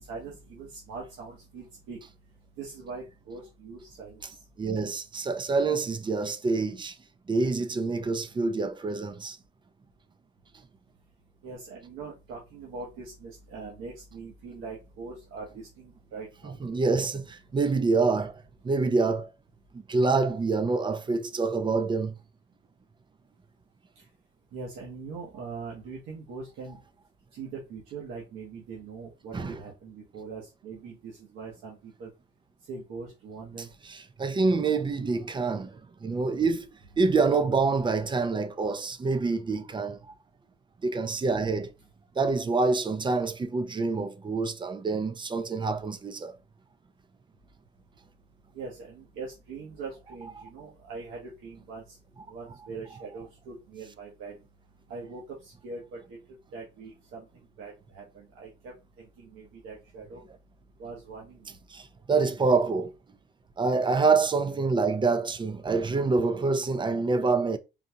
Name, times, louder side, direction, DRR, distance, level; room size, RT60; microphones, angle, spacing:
voice 1, 0.0-2.0 2.6-4.4 11.4-16.6 24.5-26.8 27.3-32.1 32.7-33.7 48.5-52.0 52.3-54.3 54.9-57.3 57.6-60.2 60.8-61.5, right 4 dB, 90° right, 1.0 m, -42 dB
voice 2, 4.6-7.0 7.3-9.4 16.4-19.3 19.7-22.2 29.3-29.6 33.6-40.2 40.8-41.7 42.2-46.4 50.4-50.5 61.7-62.9 63.6-67.6, right 4 dB, 25° right, 0.4 m, -26 dB
3.8 x 2.2 x 2.8 m
cardioid pair, 90°, 20 cm